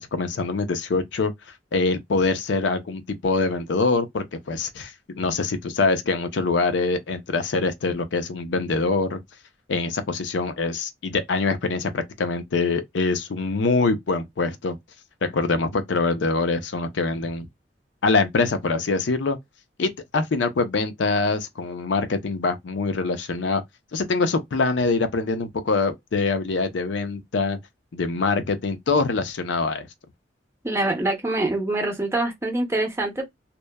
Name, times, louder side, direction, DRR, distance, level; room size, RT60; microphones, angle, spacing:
voice 1, 0.0-1.3 1.7-9.2 9.7-14.8 15.2-17.5 18.0-19.4 19.8-23.6 23.9-27.6 27.9-29.9, left 3 dB, 85° left, 0.5 m, -24 dB
voice 2, 30.6-33.2, right 2 dB, 15° right, 0.6 m, -25 dB
2.8 x 2.1 x 2.2 m
head